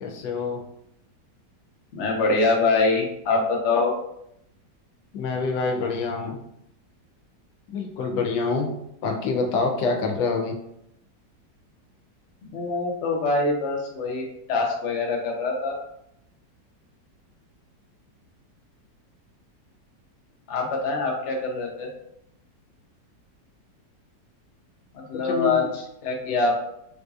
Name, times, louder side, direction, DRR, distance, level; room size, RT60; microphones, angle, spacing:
voice 1, 0.0-0.6 5.1-6.4 7.7-8.7 9.0-10.6 25.2-25.7, left 4 dB, 80° left, 3 dB, 1.3 m, -26 dB
voice 2, 1.9-3.9 12.4-14.2 14.5-15.8 20.5-21.9 24.9-26.6, left 3 dB, 60° left, 0 dB, 0.7 m, -24 dB
3.8 x 2.7 x 2.3 m, 0.77 s
omnidirectional pair, 2.0 m